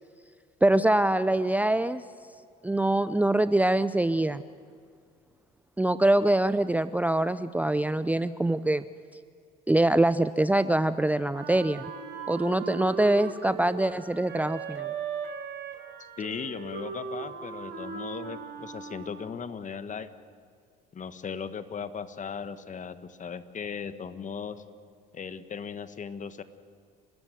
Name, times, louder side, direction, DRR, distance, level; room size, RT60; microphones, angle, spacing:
voice 1, 0.6-2.0 2.6-4.4 5.8-8.8 9.7-11.9 12.3-14.9, right 1 dB, 5° right, 13 dB, 0.6 m, -24 dB
Wind instrument woodwind instrument, 11.3-19.5, right 7 dB, 55° right, 4.2 m, -38 dB
voice 2, 16.0-20.1 20.9-24.6 25.1-26.4, left 6 dB, 40° left, 12 dB, 1.5 m, -37 dB
30.0 x 13.0 x 9.2 m, 2.2 s
hypercardioid pair, 70°, 21 cm